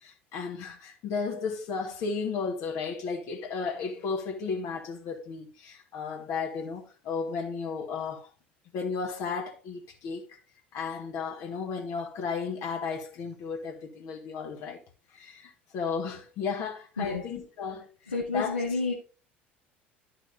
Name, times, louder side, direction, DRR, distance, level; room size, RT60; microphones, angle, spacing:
voice 1, 0.0-8.3 8.7-10.3 10.7-14.8 15.1-18.6, left 5 dB, 50° left, 1.7 m, -34 dB
voice 2, 18.1-18.9, left 3 dB, 85° left, 1.1 m, -29 dB
12.0 x 6.0 x 2.7 m
figure-of-eight pair, 65°, 6 cm